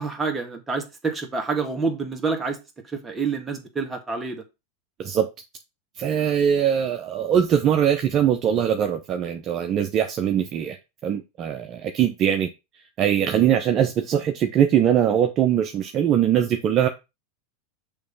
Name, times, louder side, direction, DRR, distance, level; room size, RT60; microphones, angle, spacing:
voice 1, 0.0-2.6 2.9-4.4, right 4 dB, 15° right, 1.8 m, -27 dB
voice 2, 6.0-10.8 11.0-12.5 13.0-16.9, right 9 dB, 40° right, 0.8 m, -21 dB
6.8 x 3.2 x 5.5 m
hypercardioid pair, 110°, 0 cm